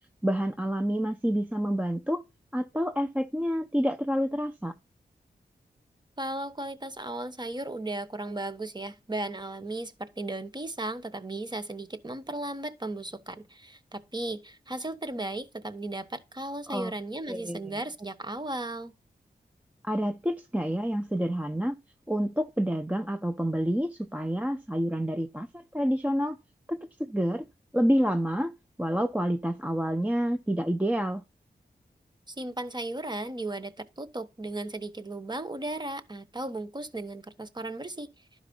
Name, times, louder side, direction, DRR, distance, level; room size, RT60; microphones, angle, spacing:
voice 1, 0.2-2.2 2.5-4.7 16.7-16.9 17.3-17.8 19.8-21.8 22.1-26.4 26.7-27.5 27.7-28.5 28.8-31.2, equal, 10° right, 0.7 m, -28 dB
voice 2, 6.2-18.9 32.3-38.1, right 2 dB, 25° right, 1.2 m, -36 dB
11.5 x 5.0 x 5.4 m
cardioid pair, 60°, 17 cm